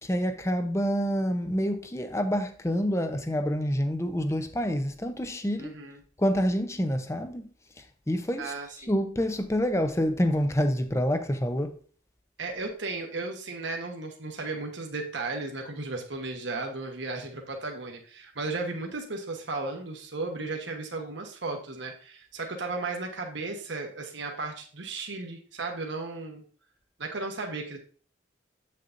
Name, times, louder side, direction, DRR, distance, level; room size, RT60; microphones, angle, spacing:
voice 1, 0.0-5.7 6.2-7.5 8.1-8.5 8.9-11.8, equal, 15° left, 0.6 m, -27 dB
voice 2, 5.6-6.0 8.4-8.9 12.4-26.4 27.0-27.8, right 3 dB, 70° right, 1.2 m, -35 dB
8.2 x 6.6 x 2.6 m
head